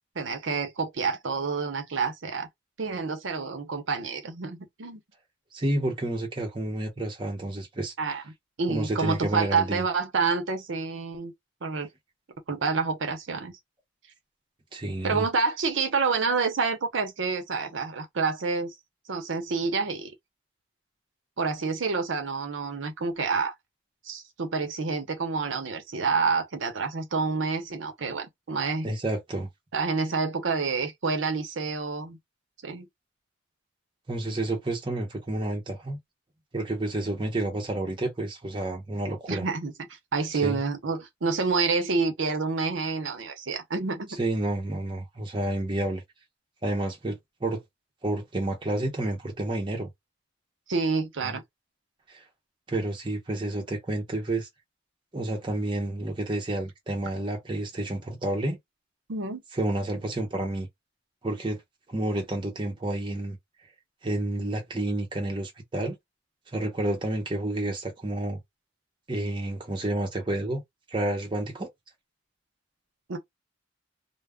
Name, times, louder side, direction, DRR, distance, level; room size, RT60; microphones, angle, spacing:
voice 1, 0.2-2.5 2.8-5.0 8.0-8.2 8.6-11.3 11.6-11.9 12.5-13.5 15.0-18.7 19.1-20.1 21.4-23.5 24.0-28.9 29.7-32.2 32.6-32.9 39.3-39.7 40.1-44.1 50.7-51.4 59.1-59.4 73.1-73.2, right 4 dB, 85° right, 0.7 m, -28 dB
voice 2, 5.5-8.2 8.7-9.8 14.7-15.3 28.8-29.5 34.1-36.0 36.5-39.5 40.4-40.6 44.2-46.0 46.6-47.6 48.0-49.9 51.2-51.4 52.1-52.2 52.7-54.5 55.1-58.6 59.5-60.7 61.2-61.6 61.9-63.4 64.0-66.0 66.5-68.4 69.1-70.6 70.9-71.7, right 1 dB, 25° right, 0.7 m, -30 dB
2.2 x 2.0 x 3.4 m
head